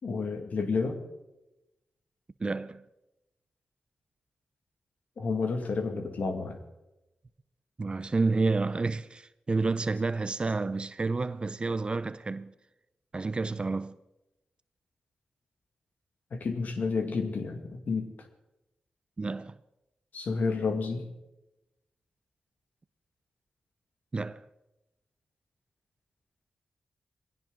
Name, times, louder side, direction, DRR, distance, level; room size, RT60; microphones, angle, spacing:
voice 1, 0.0-1.0 5.2-6.6 16.3-18.1 20.1-21.1, left 4 dB, 70° left, 2.2 m, -30 dB
voice 2, 2.4-2.8 7.8-12.5 13.1-14.0 19.2-19.6 24.1-24.4, right 3 dB, 35° right, 0.6 m, -30 dB
20.5 x 16.5 x 4.0 m
cardioid pair, 70°, 3 cm